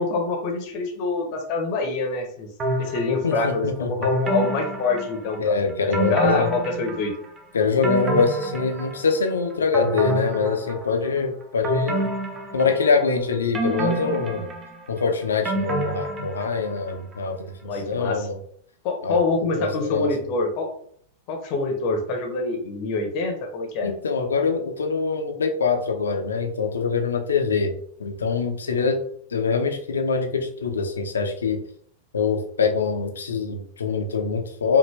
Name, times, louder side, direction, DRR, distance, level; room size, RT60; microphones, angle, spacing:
voice 1, 0.0-2.5 2.8-5.6 5.8-7.1 17.6-18.3 18.8-20.7 21.3-23.9, left 3 dB, 45° left, 3 dB, 0.9 m, -25 dB
sound 1, 2.6-3.4 4.0-5.5 5.9-7.3 7.6-9.3 9.7-11.1 11.6-13.1 13.5-16.8 17.1-17.2, right 1 dB, 25° right, 0.9 m, -28 dB
voice 2, 3.2-4.1 5.4-6.5 7.5-12.0 12.5-14.4 14.9-17.5 17.8-18.4 19.0-19.2 19.6-20.1 23.8-27.7 28.0-29.0 29.3-31.6 32.1-34.8, left 5 dB, 70° left, 4 dB, 0.7 m, -24 dB
5.2 x 2.6 x 3.3 m, 0.62 s
figure-of-eight pair, 90°, 0 cm